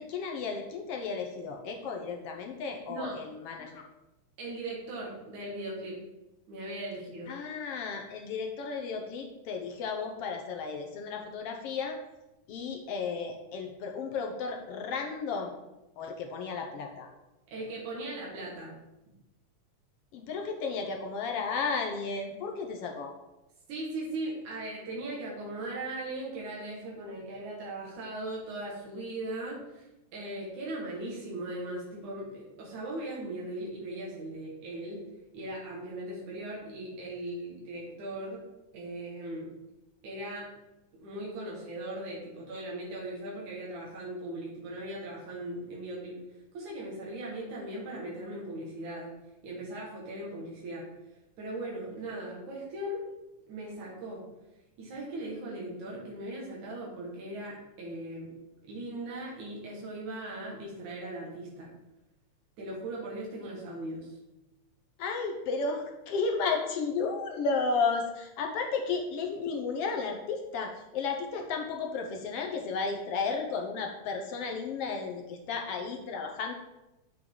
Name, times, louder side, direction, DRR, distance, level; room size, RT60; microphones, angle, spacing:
voice 1, 0.0-3.8 7.3-12.0 12.5-15.5 16.0-17.1 20.1-23.1 65.0-76.5, left 4 dB, 70° left, 3 dB, 1.5 m, -33 dB
voice 2, 4.4-6.0 6.5-7.4 17.5-18.7 23.7-29.9 30.1-35.0 35.3-38.4 38.7-39.5 40.0-40.5 40.9-46.2 46.5-49.1 49.4-50.9 51.4-53.0 53.5-54.3 54.8-58.3 58.6-61.7 62.6-64.1, right 1 dB, 85° right, -4 dB, 3.2 m, -38 dB
7.7 x 7.6 x 3.8 m, 0.96 s
omnidirectional pair, 3.4 m